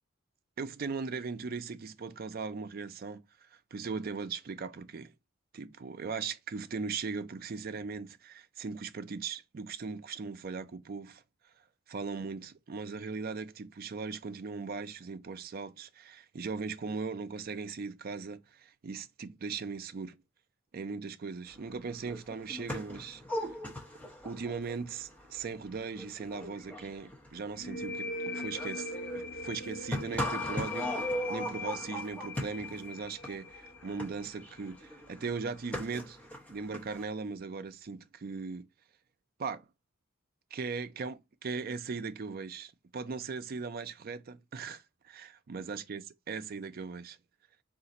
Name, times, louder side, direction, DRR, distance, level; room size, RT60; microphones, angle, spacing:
voice 1, 0.6-5.1 5.5-11.2 11.9-20.2 20.7-23.6 24.2-36.2 36.5-38.7 39.4-39.7 40.5-47.2, right 4 dB, 45° right, 0.4 m, -39 dB
sound 1, 21.7-21.8 21.9-37.0, left 1 dB, 5° left, 0.8 m, -39 dB
sound 2, 27.6-35.0, left 2 dB, 45° left, 0.9 m, -41 dB
3.9 x 2.5 x 4.0 m
head